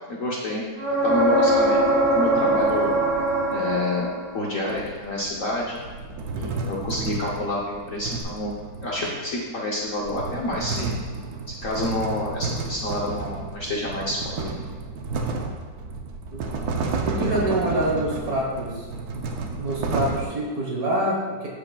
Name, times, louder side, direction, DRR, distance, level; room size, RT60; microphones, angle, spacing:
voice 1, 0.1-0.6 1.0-2.9 3.5-5.8 6.3-8.6 8.8-10.9 11.5-14.5, left 1 dB, 55° left, -4 dB, 1.0 m, -28 dB
sound 1, 0.8-4.5 8.2-8.3, right 1 dB, 85° right, 2.4 m, -22 dB
sound 2, 2.4-3.7 4.7-9.3 9.8-20.3, right 4 dB, 65° right, 1.0 m, -32 dB
voice 2, 17.0-18.9 19.5-21.5, right 1 dB, 50° right, -2 dB, 1.6 m, -26 dB
13.5 x 4.9 x 2.3 m, 1.4 s
omnidirectional pair, 2.2 m